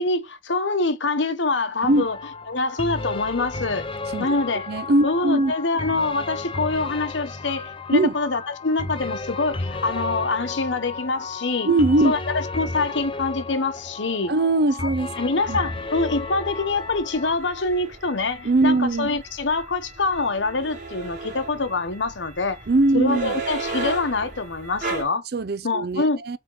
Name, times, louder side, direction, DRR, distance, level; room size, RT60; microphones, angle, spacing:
voice 1, 0.0-2.2 2.5-3.9 4.2-4.7 5.0-11.7 12.0-14.3 14.8-14.9 15.2-22.6 22.9-25.2 25.6-26.2, left 3 dB, 80° left, 1.1 m, -25 dB
sound 1, 1.8-17.4, left 3 dB, 30° left, 0.6 m, -33 dB
voice 2, 4.7-5.5 7.9-8.1 11.6-12.1 14.3-15.2 15.5-15.6 18.4-19.1 22.7-23.4 25.3-26.4, right 2 dB, 55° right, 0.6 m, -20 dB
sound 2, 15.4-25.0, right 4 dB, 40° right, 3.7 m, -36 dB
8.7 x 3.7 x 3.9 m
head